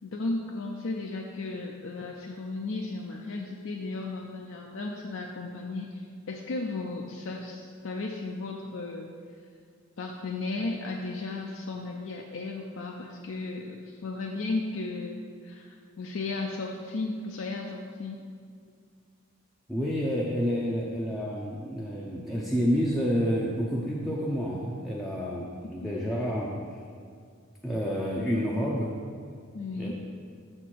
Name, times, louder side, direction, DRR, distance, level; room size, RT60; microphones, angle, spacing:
voice 1, 0.0-9.1 10.0-18.2 25.8-25.9 29.5-29.9, left 3 dB, 70° left, 1 dB, 0.5 m, -35 dB
voice 2, 19.7-26.5 27.6-28.9 29.8-29.9, equal, ahead, -6 dB, 0.5 m, -29 dB
6.6 x 4.3 x 4.6 m, 2.2 s
head